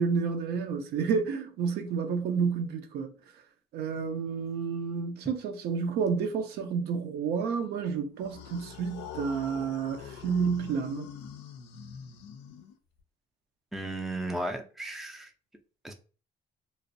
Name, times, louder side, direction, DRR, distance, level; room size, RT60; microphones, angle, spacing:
voice 1, 0.0-3.1 3.7-11.1, right 6 dB, 70° right, 0.5 m, -30 dB
sound 1, 8.2-13.0, left 8 dB, 90° left, 0.4 m, -44 dB
voice 2, 13.7-15.3 15.8-15.9, right 1 dB, ahead, 0.4 m, -35 dB
2.5 x 2.0 x 2.5 m
cardioid pair, 110°, 17 cm